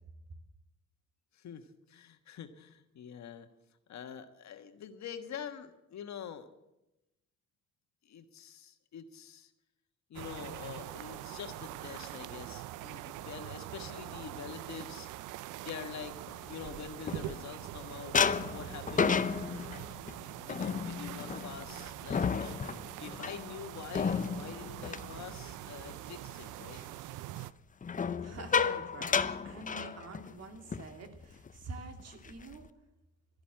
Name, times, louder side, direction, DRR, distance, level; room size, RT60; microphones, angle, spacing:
voice 1, 1.3-3.5 3.9-6.5 8.0-9.5 10.1-15.1 15.6-16.2 16.4-18.2 18.5-19.2 20.1-22.6 23.0-26.8, left 8 dB, 65° left, 7 dB, 1.4 m, -45 dB
sound 1, 10.1-27.5, right 15 dB, 85° right, 0.5 m, -44 dB
sound 2, 16.3-17.7 18.1-26.0 26.3-26.7 27.8-30.4 30.7-30.9 31.2-31.5 32.0-32.7, left 6 dB, 25° left, 0.6 m, -33 dB
voice 2, 28.2-32.7, right 3 dB, 55° right, 5 dB, 2.4 m, -47 dB
13.0 x 11.5 x 7.5 m, 0.92 s
cardioid pair, 90°, 30 cm